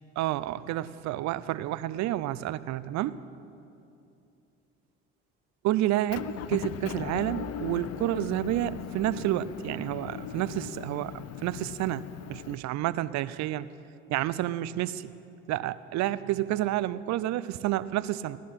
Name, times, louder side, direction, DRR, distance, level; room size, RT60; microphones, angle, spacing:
voice 1, 0.2-3.2 5.6-12.0 12.3-13.7 14.1-15.1 15.5-18.4, right 14 dB, 65° right, 16 dB, 0.6 m, -30 dB
Motor vehicle (road) / Engine, 6.1-12.6, left 10 dB, 55° left, 0.6 m, -38 dB
17.5 x 12.0 x 5.8 m, 2.7 s
supercardioid pair, 75°, 30 cm